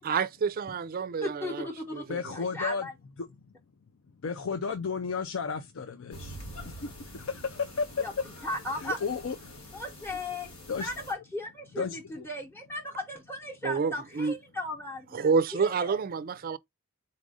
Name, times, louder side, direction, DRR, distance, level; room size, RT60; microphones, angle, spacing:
voice 1, 0.0-2.3 13.6-14.3 15.1-16.6, right 5 dB, 45° right, 0.4 m, -29 dB
voice 2, 1.2-2.9 8.0-8.1 8.4-9.0 9.7-10.5 10.8-15.2 15.5-16.0, left 1 dB, 10° left, 0.9 m, -36 dB
voice 3, 2.1-2.9 4.2-6.4 6.6-8.0 8.8-9.4 10.7-10.9 11.8-12.2, left 5 dB, 70° left, 0.5 m, -33 dB
sound 1, 6.1-11.1, equal, 90° left, 1.8 m, -46 dB
4.1 x 2.6 x 4.8 m
head